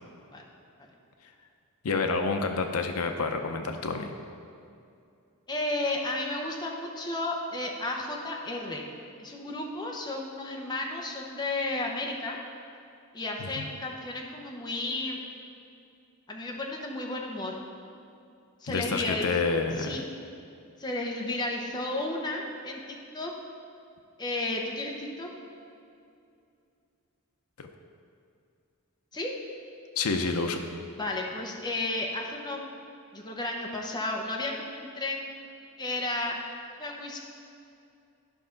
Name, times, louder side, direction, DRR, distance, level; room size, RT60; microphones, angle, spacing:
voice 1, 1.8-4.1 13.4-13.7 18.7-19.9 27.6-27.7 30.0-30.6, left 4 dB, 80° left, 5 dB, 0.6 m, -28 dB
voice 2, 5.5-8.8 9.2-12.4 13.1-15.2 16.3-17.6 18.6-19.3 19.8-20.1 20.8-23.3 24.2-25.3 29.1-29.3 31.0-32.6 33.1-35.3 35.8-36.4 36.8-37.2, left 2 dB, 20° left, 0 dB, 0.8 m, -33 dB
12.5 x 5.7 x 3.9 m, 2.5 s
head